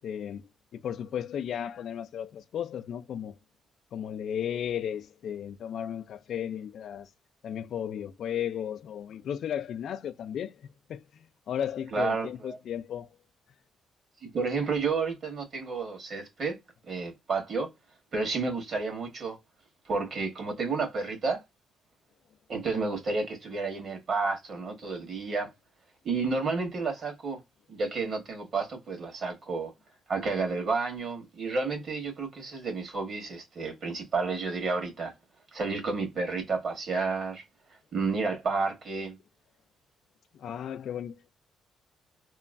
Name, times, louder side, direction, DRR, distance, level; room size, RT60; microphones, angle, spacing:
voice 1, 0.0-3.3 3.9-7.1 7.4-10.5 10.9-13.1 40.3-41.3, left 9 dB, 70° left, 0.3 m, -35 dB
voice 2, 11.9-12.6 14.2-16.6 16.9-17.7 18.1-19.4 19.9-21.4 22.5-25.5 26.0-27.4 27.7-29.7 30.1-35.1 35.5-37.4 37.9-39.2, right 4 dB, 55° right, 1.5 m, -31 dB
3.0 x 2.4 x 2.4 m
cardioid pair, 90°, 0 cm